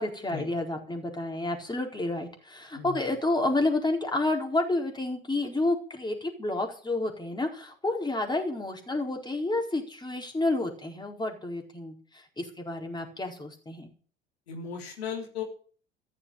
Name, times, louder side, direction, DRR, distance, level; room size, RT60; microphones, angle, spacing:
voice 1, 0.0-13.9, left 2 dB, 15° left, 2 dB, 4.4 m, -30 dB
voice 2, 14.5-15.4, left 7 dB, 80° left, 0 dB, 3.8 m, -36 dB
14.5 x 7.4 x 9.1 m, 0.43 s
figure-of-eight pair, 65°, 31 cm